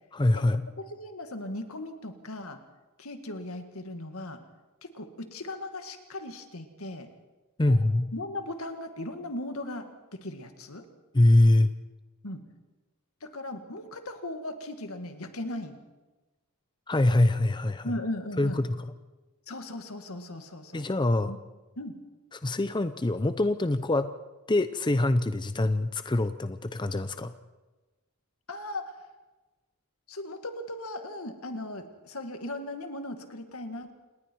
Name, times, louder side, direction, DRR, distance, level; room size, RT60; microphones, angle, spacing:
voice 1, 0.1-0.7 7.6-8.1 11.1-11.7 16.9-17.9 18.4-18.8 20.7-21.3 22.3-24.1 24.5-27.3, left 1 dB, 20° left, 11 dB, 0.6 m, -24 dB
voice 2, 0.8-2.6 3.0-4.4 4.8-7.1 7.6-7.8 8.1-10.8 12.2-12.4 13.2-15.8 17.8-18.6 19.5-20.9 21.3-21.4 21.8-22.0 28.5-28.9 30.1-33.9, left 1 dB, 75° left, 6 dB, 2.1 m, -38 dB
28.5 x 19.5 x 4.7 m, 1.2 s
head